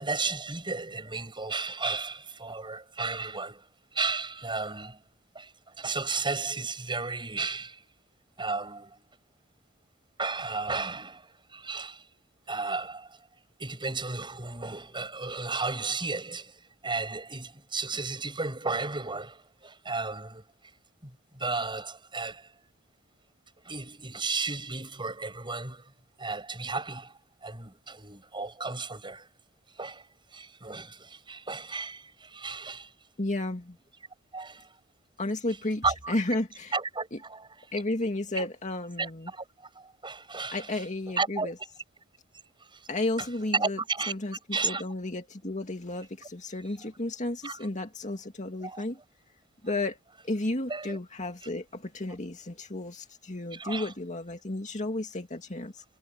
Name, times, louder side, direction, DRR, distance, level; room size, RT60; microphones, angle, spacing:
voice 1, 0.0-3.6 3.9-5.0 5.3-5.5 5.8-7.8 8.4-9.1 10.2-12.0 12.5-13.2 13.6-20.5 21.0-22.5 23.7-25.9 26.2-29.3 29.8-30.1 30.3-32.9 34.3-34.8 35.8-36.2 36.7-37.5 38.4-38.5 39.0-39.4 39.8-40.7 41.2-41.5 42.7-42.9 43.2-43.3 43.5-44.1 44.5-44.8 47.4-47.6 48.6-48.8 50.7-51.0 53.5-53.9, right 4 dB, 25° right, 7.5 m, -34 dB
voice 2, 33.2-33.8 35.2-36.7 37.1-37.2 37.7-39.3 40.5-41.5 42.9-43.8 44.1-49.0 49.6-50.0 50.2-55.8, left 2 dB, 35° left, 2.3 m, -33 dB
head